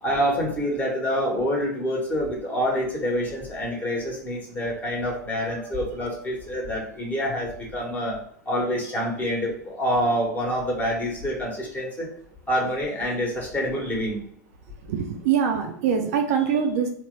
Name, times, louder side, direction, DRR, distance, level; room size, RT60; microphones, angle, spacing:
voice 1, 0.0-8.2 8.4-12.1 12.5-14.2, equal, 15° left, -2 dB, 1.2 m, -26 dB
voice 2, 14.9-16.9, right 7 dB, 55° right, 4 dB, 0.5 m, -23 dB
3.3 x 2.1 x 3.2 m, 0.66 s
hypercardioid pair, 95°, 10 cm